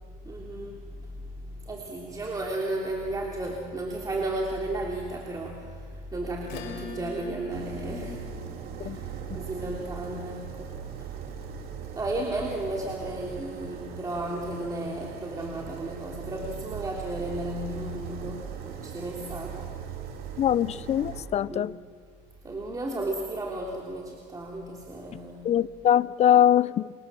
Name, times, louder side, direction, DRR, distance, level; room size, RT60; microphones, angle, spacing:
voice 1, 0.2-8.2 8.8-10.8 12.0-19.8 21.4-21.7 22.4-25.5, right 1 dB, 20° right, -1 dB, 3.4 m, -34 dB
Acoustic guitar / Strum, 6.4-11.4, left 2 dB, 70° left, 5.9 m, -43 dB
sound 1, 7.5-21.2, right 8 dB, 55° right, 3.7 m, -39 dB
voice 2, 20.4-21.7 25.4-26.9, left 10 dB, 35° left, 19 dB, 0.6 m, -22 dB
28.0 x 26.0 x 7.5 m, 2.1 s
supercardioid pair, 115°, 19 cm